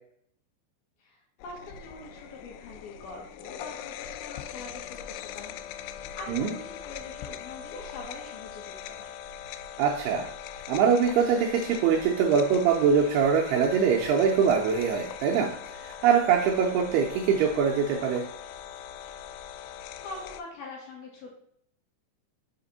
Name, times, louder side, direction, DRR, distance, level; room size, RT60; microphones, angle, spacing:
voice 1, 1.0-9.0 19.7-21.3, left 2 dB, 65° left, -1 dB, 2.8 m, -44 dB
sound 1, 1.4-20.4, left 9 dB, 90° left, 3.0 m, -41 dB
voice 2, 9.8-10.3 10.7-18.2, right 6 dB, 85° right, 0 dB, 2.3 m, -23 dB
6.6 x 5.1 x 4.0 m, 0.68 s
omnidirectional pair, 5.4 m